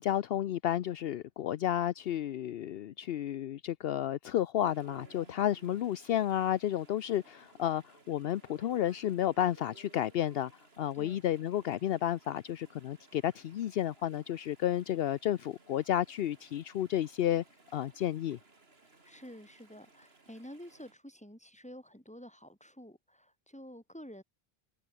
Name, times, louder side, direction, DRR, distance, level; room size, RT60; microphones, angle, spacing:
voice 1, 0.0-10.5 10.8-17.4 17.7-18.4, left 11 dB, 70° left, 0.8 m, -32 dB
Chatter / Stream, 4.6-20.9, right 3 dB, 75° right, 3.3 m, -60 dB
voice 2, 19.0-24.2, equal, 5° left, 4.5 m, -50 dB
omnidirectional pair, 1.1 m